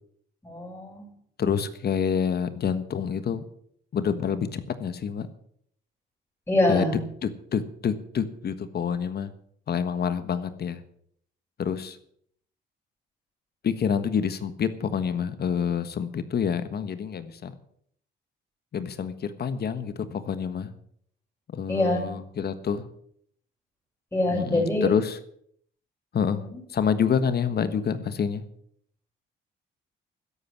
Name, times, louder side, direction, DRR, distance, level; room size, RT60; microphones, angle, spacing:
voice 1, 0.4-1.1 6.5-7.0 21.7-22.0 24.1-24.9 26.4-26.6, left 1 dB, 15° left, -2 dB, 6.1 m, -25 dB
voice 2, 1.4-3.4 3.9-5.3 6.7-6.9 7.2-9.3 9.7-10.8 11.6-12.0 13.6-17.5 18.7-20.7 21.5-22.9 24.3-25.2 26.1-28.4, left 7 dB, 55° left, 12 dB, 1.4 m, -27 dB
13.0 x 11.0 x 7.5 m, 0.66 s
cardioid pair, 90°, 20 cm